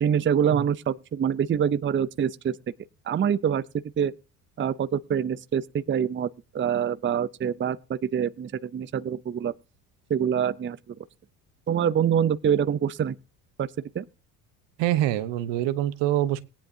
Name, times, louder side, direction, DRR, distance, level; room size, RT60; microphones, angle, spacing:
voice 1, 0.0-2.6 3.1-4.1 4.6-6.3 6.5-9.5 10.1-11.0 11.7-13.2 13.6-13.7 13.9-14.1, right 8 dB, 25° right, 0.6 m, -25 dB
voice 2, 14.8-16.4, right 13 dB, 70° right, 1.1 m, -25 dB
18.0 x 10.0 x 2.8 m
supercardioid pair, 75°, 45 cm